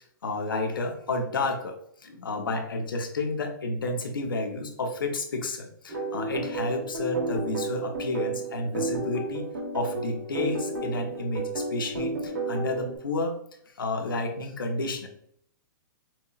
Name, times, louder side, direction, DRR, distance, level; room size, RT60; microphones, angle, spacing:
voice 1, 0.2-9.5 9.7-13.4 13.7-15.1, left 2 dB, 80° left, 4 dB, 0.9 m, -31 dB
sound 1, 5.9-13.0, right 3 dB, 65° right, 1.4 m, -32 dB
5.6 x 2.8 x 2.4 m, 0.64 s
hypercardioid pair, 120°, 11 cm